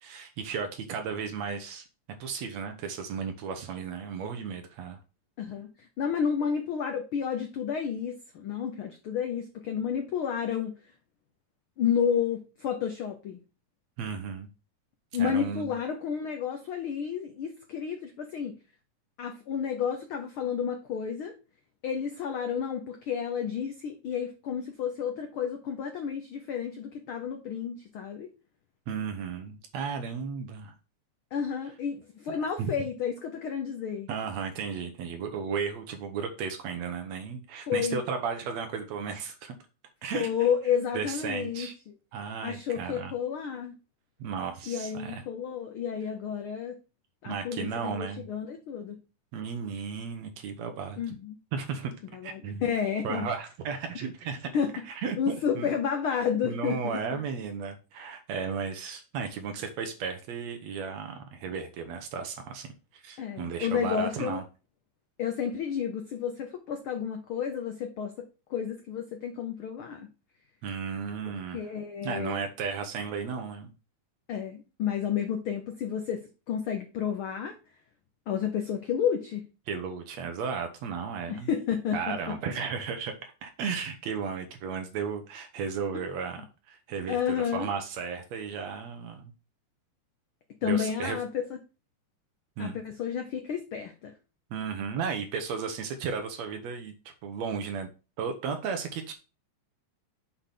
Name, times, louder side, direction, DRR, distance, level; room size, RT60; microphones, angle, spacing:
voice 1, 0.0-1.8 2.2-5.0 14.0-14.5 15.2-15.8 28.9-30.7 32.3-32.7 34.1-39.6 40.0-40.3 40.9-41.7 42.1-43.1 44.2-45.2 47.3-48.3 49.3-51.0 51.5-51.9 52.2-52.6 53.0-54.5 54.9-55.2 55.5-55.7 56.4-62.7 63.0-64.4 70.6-71.6 72.0-73.7 79.7-81.5 81.9-86.4 86.7-89.3 90.6-91.2 92.6-92.8 94.5-96.9 97.2-97.9 98.2-99.1, right 6 dB, 70° right, 6 dB, 2.1 m, -34 dB
voice 2, 5.4-10.7 11.8-13.4 15.1-18.5 19.2-21.4 21.8-28.3 31.3-34.1 37.7-38.0 40.1-41.7 42.4-43.8 44.7-46.8 47.2-49.0 51.0-51.3 52.1-53.3 54.5-54.7 55.2-57.2 63.2-64.4 65.2-70.1 71.3-72.5 74.3-77.5 78.3-79.4 81.3-82.4 85.9-86.1 87.1-87.7 90.6-91.3 92.6-94.1, left 7 dB, 75° left, 4 dB, 1.2 m, -31 dB
7.0 x 3.9 x 5.8 m, 0.32 s
omnidirectional pair, 3.5 m